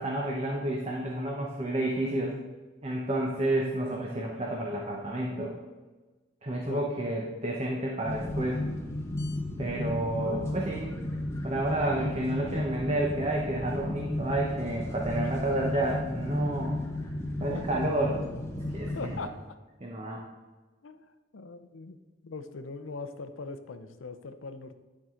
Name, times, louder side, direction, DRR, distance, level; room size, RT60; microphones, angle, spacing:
voice 1, 0.0-2.4 2.8-5.5 6.4-8.7 9.6-10.9 11.4-16.8 17.4-18.1 18.7-19.3 19.8-20.2, right 1 dB, 30° right, -1 dB, 0.9 m, -30 dB
sound 1, 8.0-19.2, left 1 dB, 15° left, 0.8 m, -34 dB
voice 2, 17.5-17.8 18.9-19.3 20.8-21.0 21.3-22.0 22.2-24.8, left 3 dB, 85° left, 10 dB, 0.6 m, -40 dB
11.0 x 4.7 x 3.8 m, 1.2 s
head